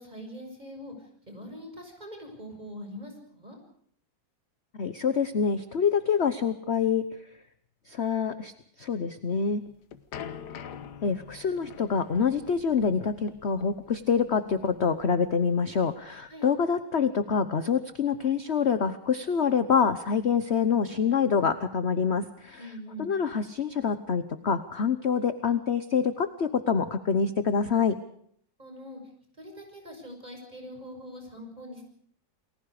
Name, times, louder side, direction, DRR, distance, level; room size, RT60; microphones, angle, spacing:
voice 1, 0.0-3.6 16.3-16.5 22.6-23.1 28.6-29.0 29.4-31.8, equal, 20° right, 3 dB, 6.5 m, -43 dB
voice 2, 4.8-7.0 7.9-8.5 8.8-9.6 11.0-22.7 23.0-28.0, left 6 dB, 45° left, 12 dB, 1.1 m, -26 dB
sound 1, 9.5-16.3, left 8 dB, 65° left, 1.7 m, -45 dB
29.0 x 20.5 x 5.0 m, 0.64 s
omnidirectional pair, 1.9 m